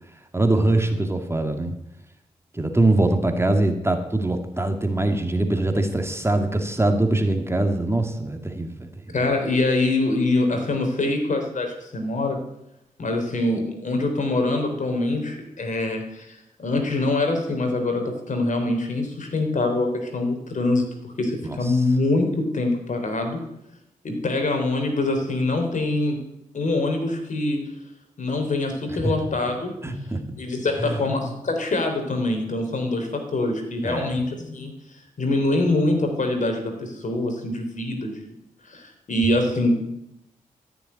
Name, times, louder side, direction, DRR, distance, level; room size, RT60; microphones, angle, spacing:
voice 1, 0.3-1.7 2.5-8.9 9.2-9.3 21.5-21.8 29.0-29.1 29.8-30.2 30.8-31.0 33.8-34.2, right 2 dB, 15° right, 5 dB, 2.1 m, -23 dB
voice 2, 9.1-12.4 13.0-23.4 24.0-26.2 26.5-27.6 28.2-29.7 30.4-34.7 35.2-38.4 38.7-39.7, left 2 dB, 60° left, 4 dB, 3.5 m, -24 dB
13.5 x 7.1 x 9.5 m, 0.84 s
cardioid pair, 50°, 14 cm